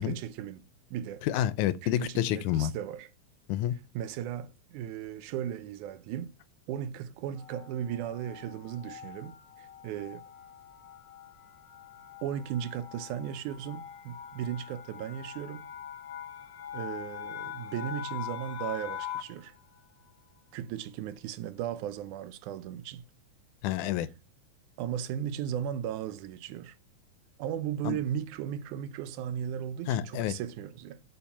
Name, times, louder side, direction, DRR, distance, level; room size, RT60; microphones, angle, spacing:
voice 1, 0.0-1.3 1.8-3.1 3.9-6.3 6.7-10.2 12.2-15.7 16.7-19.5 20.5-23.0 24.8-26.8 27.4-31.0, right 10 dB, 90° right, 2.2 m, -36 dB
voice 2, 1.2-2.7 3.5-3.7 23.6-24.1 27.8-28.0 29.9-30.4, left 12 dB, 90° left, 2.1 m, -28 dB
sound 1, 7.4-19.5, left 9 dB, 70° left, 1.0 m, -43 dB
7.0 x 5.2 x 7.1 m
omnidirectional pair, 3.4 m